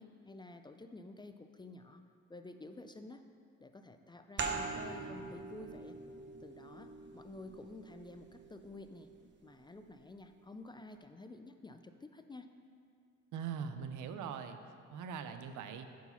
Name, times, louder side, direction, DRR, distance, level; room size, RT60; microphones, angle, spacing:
voice 1, 0.0-2.0 2.3-3.2 3.6-6.0 6.4-9.1 9.4-12.5, left 2 dB, 15° left, 7 dB, 0.3 m, -51 dB
sound 1, 4.4-9.7, right 4 dB, 40° right, 0.8 m, -43 dB
voice 2, 13.3-14.6 14.9-15.9, right 7 dB, 80° right, 9 dB, 0.6 m, -41 dB
8.0 x 4.7 x 5.6 m, 2.3 s
cardioid pair, 90°, 30 cm